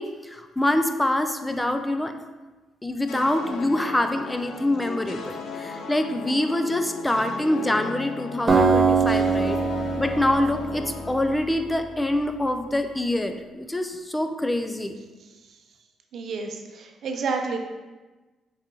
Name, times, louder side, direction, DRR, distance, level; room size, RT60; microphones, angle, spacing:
voice 1, 0.0-2.1 2.8-9.6 10.0-14.9, left 1 dB, 10° left, 7 dB, 0.4 m, -25 dB
sound 1, 3.1-12.4, left 5 dB, 80° left, 0.5 m, -37 dB
Acoustic guitar, 8.5-11.6, right 4 dB, 30° right, 0.9 m, -23 dB
voice 2, 16.1-17.6, right 4 dB, 65° right, 4 dB, 0.6 m, -30 dB
4.8 x 2.8 x 3.7 m, 1.2 s
cardioid pair, 90°, 0 cm